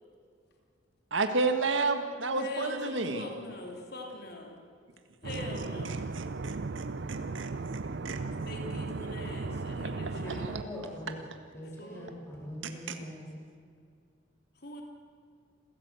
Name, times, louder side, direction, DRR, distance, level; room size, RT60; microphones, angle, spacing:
voice 1, 1.1-3.2 6.2-6.8 7.1-7.5 8.1-8.2, right 3 dB, 80° right, 6 dB, 1.7 m, -30 dB
voice 2, 2.1-4.6 5.2-6.1 8.5-10.5 11.5-12.1 14.5-14.8, left 2 dB, 55° left, 1 dB, 3.2 m, -42 dB
sound 1, 5.2-10.6, right 3 dB, 65° right, 0.6 m, -36 dB
voice 3, 10.2-11.1 11.5-13.3, equal, 15° left, -2 dB, 5.8 m, -42 dB
27.5 x 16.0 x 8.2 m, 2.2 s
head